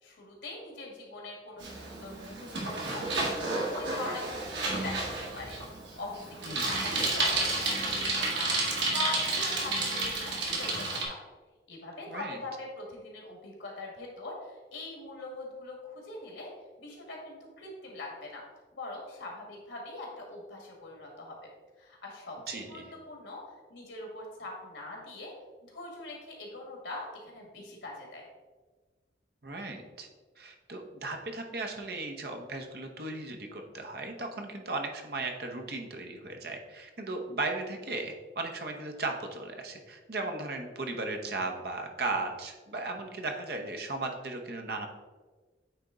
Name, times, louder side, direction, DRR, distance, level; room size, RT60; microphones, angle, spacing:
voice 1, 0.0-5.1 5.4-11.2 11.7-16.5 16.8-18.4 18.7-21.4 21.8-23.4 23.7-25.3 25.6-28.3, left 2 dB, 90° left, 0 dB, 1.9 m, -42 dB
Bicycle, 1.6-11.0, right 2 dB, 85° right, 1.7 m, -31 dB
voice 2, 6.5-6.8 12.1-12.4 22.5-22.9 29.4-30.1 30.4-44.9, right 2 dB, 55° right, 3 dB, 0.9 m, -36 dB
8.8 x 3.5 x 3.9 m, 1.4 s
head